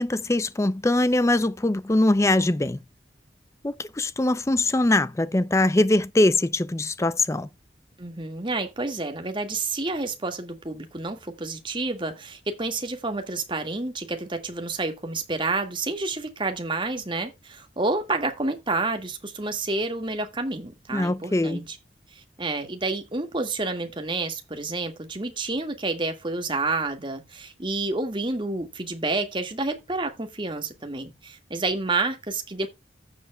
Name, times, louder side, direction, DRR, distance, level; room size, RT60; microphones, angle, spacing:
voice 1, 0.0-2.8 3.6-7.5 20.9-21.6, left 2 dB, 15° left, 0.4 m, -22 dB
voice 2, 8.0-21.8 22.1-32.7, right 3 dB, 25° right, 1.9 m, -29 dB
15.0 x 7.5 x 2.3 m
head